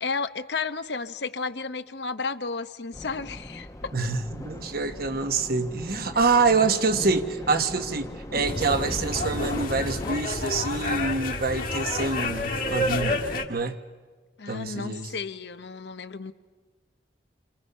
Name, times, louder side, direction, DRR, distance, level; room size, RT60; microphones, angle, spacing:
voice 1, 0.0-3.9 14.4-16.3, left 4 dB, 70° left, 11 dB, 0.9 m, -33 dB
sound 1, 2.9-10.2, left 1 dB, 20° left, 0.9 m, -38 dB
voice 2, 3.9-13.2 13.5-13.8 14.5-15.1, right 4 dB, 60° right, 7 dB, 1.3 m, -26 dB
sound 2, 8.5-13.4, left 2 dB, 55° left, 2.0 m, -29 dB
28.5 x 27.0 x 5.6 m, 1.3 s
head